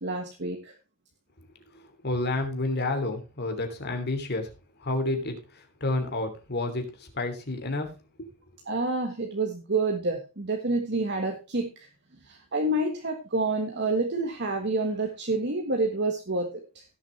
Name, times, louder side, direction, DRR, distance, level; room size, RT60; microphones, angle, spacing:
voice 1, 0.0-0.8 8.7-11.9 12.2-16.8, right 2 dB, 50° right, 3 dB, 1.5 m, -28 dB
voice 2, 2.0-4.5 4.8-7.9, left 2 dB, 50° left, 5 dB, 3.0 m, -30 dB
17.0 x 7.3 x 3.3 m, 0.30 s
head